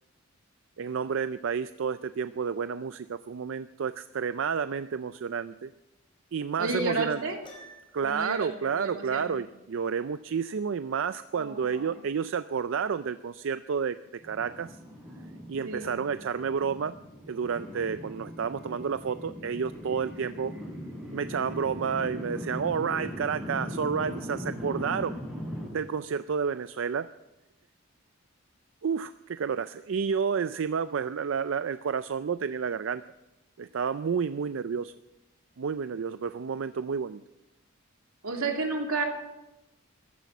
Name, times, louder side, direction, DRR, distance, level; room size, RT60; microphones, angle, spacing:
voice 1, 0.8-5.7 6.3-7.2 7.9-14.8 15.5-16.9 17.3-20.5 21.1-25.2 25.7-27.1 28.8-33.0 33.6-34.9 35.6-37.2, right 6 dB, 60° right, 12 dB, 0.4 m, -30 dB
voice 2, 6.6-7.4 8.0-9.3 11.3-12.0 15.6-16.0 38.2-39.0, right 3 dB, 85° right, 1 dB, 2.9 m, -32 dB
Piano, 7.4-8.3, right 1 dB, 25° left, 3.5 m, -50 dB
sound 1, 14.2-25.7, equal, 5° right, 7.3 m, -39 dB
14.5 x 12.5 x 6.0 m, 0.94 s
head